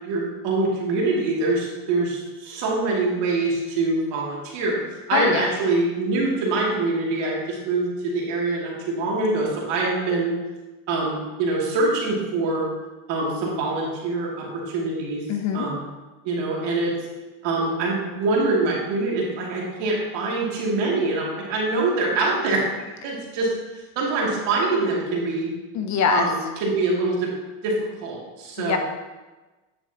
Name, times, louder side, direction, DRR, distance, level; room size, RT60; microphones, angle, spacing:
voice 1, 0.0-4.8 5.1-10.3 10.9-12.7 13.1-15.2 15.5-15.9 16.2-16.9 17.4-22.6 23.0-23.5 24.0-25.5 26.1-27.3 27.6-27.7 28.0-28.8, right 3 dB, 60° right, -4 dB, 2.7 m, -24 dB
voice 2, 5.1-5.5 15.3-15.7 25.7-26.3 28.6-28.8, left 6 dB, 35° left, 6 dB, 0.5 m, -23 dB
9.4 x 7.0 x 2.9 m, 1.2 s
cardioid pair, 135°, 48 cm